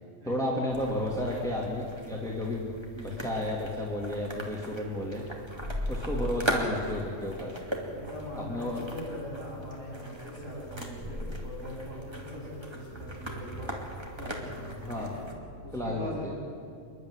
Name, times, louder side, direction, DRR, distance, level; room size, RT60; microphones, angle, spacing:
voice 1, 0.2-2.7 3.0-5.2 5.9-7.5 8.3-8.8 14.9-15.1 15.7-16.3, left 1 dB, 5° left, -4 dB, 2.6 m, -32 dB
sound 1, 0.7-15.3, equal, 20° right, 2.4 m, -38 dB
voice 2, 7.9-13.7 14.1-15.2 15.6-16.3, equal, 80° right, -5 dB, 8.2 m, -41 dB
27.5 x 11.5 x 9.8 m, 2.4 s
omnidirectional pair, 1.3 m